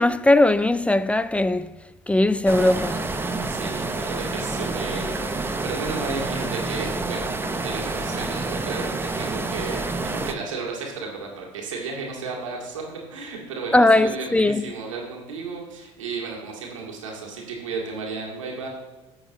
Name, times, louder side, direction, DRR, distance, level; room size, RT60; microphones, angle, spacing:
voice 1, 0.0-1.7 2.1-3.0 13.7-14.6, left 2 dB, 10° left, 0.3 m, -19 dB
sound 1, 2.5-10.3, right 3 dB, 15° right, 0.8 m, -28 dB
voice 2, 3.5-18.7, right 4 dB, 85° right, 2.1 m, -33 dB
15.0 x 6.3 x 3.1 m
hypercardioid pair, 70°, 16 cm